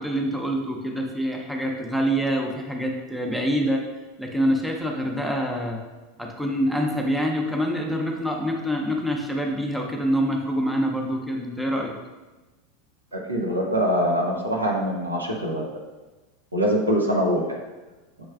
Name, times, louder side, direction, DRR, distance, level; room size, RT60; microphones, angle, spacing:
voice 1, 0.0-3.8 4.2-5.8 6.2-11.9, equal, ahead, 0 dB, 0.6 m, -26 dB
voice 2, 13.1-15.6 16.5-17.6, equal, 85° right, -1 dB, 0.7 m, -23 dB
6.2 x 3.1 x 2.3 m, 1.2 s
figure-of-eight pair, 85°, 0 cm